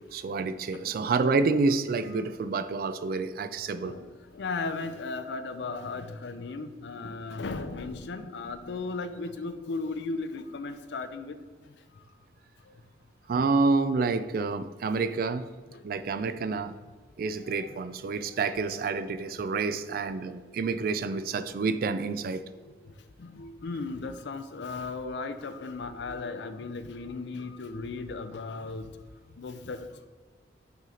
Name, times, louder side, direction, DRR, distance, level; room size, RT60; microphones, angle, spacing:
voice 1, 0.1-4.0 13.3-15.5 15.8-16.8 17.2-22.4, right 4 dB, 55° right, 12 dB, 0.3 m, -28 dB
voice 2, 4.3-11.4 15.7-15.8 16.4-16.5 17.4-17.7 20.5-20.7 22.5-22.7 23.2-28.9 29.4-30.1, left 3 dB, 75° left, 10 dB, 0.5 m, -36 dB
5.9 x 3.9 x 4.2 m, 1.4 s
head